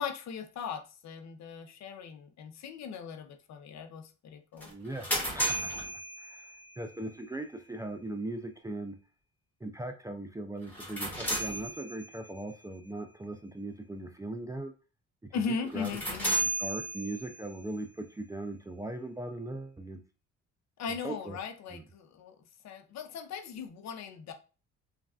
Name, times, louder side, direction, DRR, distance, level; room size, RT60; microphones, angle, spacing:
voice 1, 0.0-4.7 15.3-16.4 20.8-22.4 22.6-24.3, left 6 dB, 65° left, 0.6 m, -38 dB
sound 1, 4.6-6.8 10.6-12.3 15.7-17.5, right 1 dB, 5° left, 1.4 m, -34 dB
voice 2, 4.7-5.7 6.2-6.4 6.8-9.0 9.6-14.7 15.7-15.9 16.4-20.0 21.0-21.4 21.7-21.8, right 2 dB, 10° right, 0.3 m, -39 dB
3.2 x 2.4 x 2.3 m
cardioid pair, 90°, 30 cm